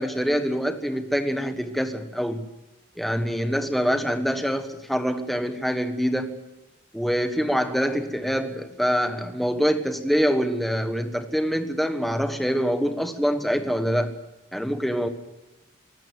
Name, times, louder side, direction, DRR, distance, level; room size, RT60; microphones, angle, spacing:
voice 1, 0.0-2.4 3.0-6.4 6.9-14.1 14.5-15.1, equal, ahead, 7 dB, 1.4 m, -25 dB
23.5 x 13.0 x 8.9 m, 1.0 s
head